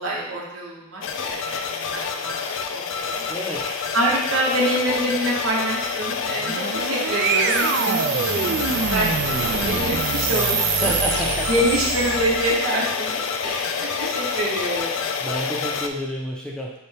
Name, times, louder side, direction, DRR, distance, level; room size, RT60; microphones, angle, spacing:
voice 1, 0.0-2.4 2.7-2.8 3.1-9.1 9.5-15.0, right 1 dB, 85° right, -4 dB, 1.2 m, -26 dB
sound 1, 1.0-15.9, left 6 dB, 60° left, 0.4 m, -27 dB
voice 2, 3.3-3.7 10.8-11.5 13.8-14.0 15.2-16.7, equal, 5° left, -3 dB, 0.6 m, -30 dB
sound 2, 6.2-12.6, right 6 dB, 55° right, 0.3 m, -25 dB
6.8 x 2.3 x 3.4 m, 0.91 s
head